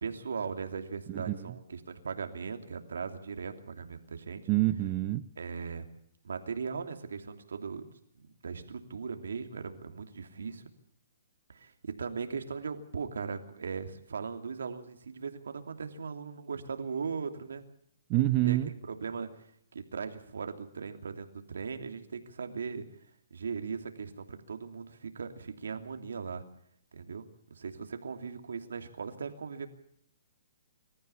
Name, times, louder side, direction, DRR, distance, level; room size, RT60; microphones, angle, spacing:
voice 1, 0.0-4.4 5.4-5.8 6.2-7.9 8.1-10.6 11.5-17.6 18.4-19.4 19.7-22.9 23.3-26.4 26.9-27.3 27.5-29.7, right 5 dB, 90° right, 6 dB, 2.9 m, -38 dB
voice 2, 4.5-5.3 18.1-18.7, right 17 dB, 25° right, 11 dB, 0.8 m, -27 dB
25.5 x 14.5 x 8.5 m, 0.69 s
hypercardioid pair, 160°, 0 cm